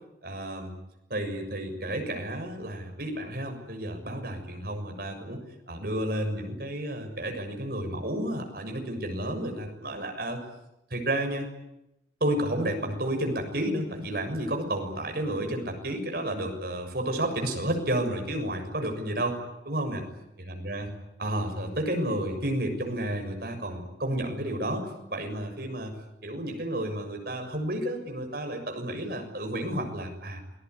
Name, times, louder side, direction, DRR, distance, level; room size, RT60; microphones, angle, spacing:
voice 1, 0.2-0.7 1.1-5.4 5.7-10.4 10.9-11.5 12.2-19.4 19.6-20.0 20.5-20.9 21.2-26.0 26.2-30.4, right 1 dB, 55° right, 4 dB, 6.8 m, -31 dB
28.5 x 21.0 x 9.7 m, 0.88 s
head